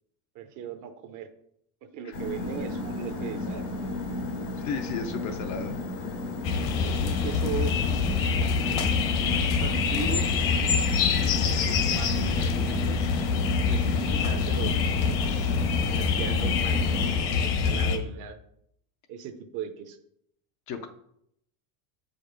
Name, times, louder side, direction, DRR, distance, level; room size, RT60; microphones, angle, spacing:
voice 1, 0.3-1.3 1.9-3.7 6.8-7.8 8.3-10.3 11.2-13.0 13.7-18.4 19.1-20.0, right 7 dB, 40° right, 9 dB, 0.7 m, -38 dB
sound 1, 2.1-17.1, left 2 dB, 85° left, 2.8 m, -33 dB
voice 2, 4.6-5.8 11.0-11.4 20.7-20.9, left 5 dB, 35° left, 7 dB, 0.5 m, -35 dB
sound 2, 6.4-18.0, left 5 dB, 65° left, 1.2 m, -25 dB
7.2 x 5.2 x 5.1 m, 0.73 s
cardioid pair, 170°, 49 cm